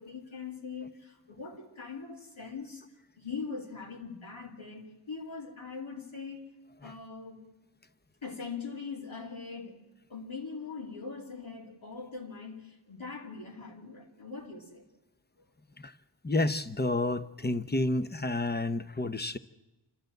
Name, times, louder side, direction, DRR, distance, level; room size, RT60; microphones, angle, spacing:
voice 1, 0.0-2.8 3.2-6.5 6.8-7.4 8.2-9.8 10.1-14.8, left 5 dB, 80° left, 2.9 m, -41 dB
voice 2, 16.2-19.4, left 2 dB, 20° left, 0.9 m, -30 dB
27.0 x 13.0 x 7.9 m
wide cardioid pair, 60°, 48 cm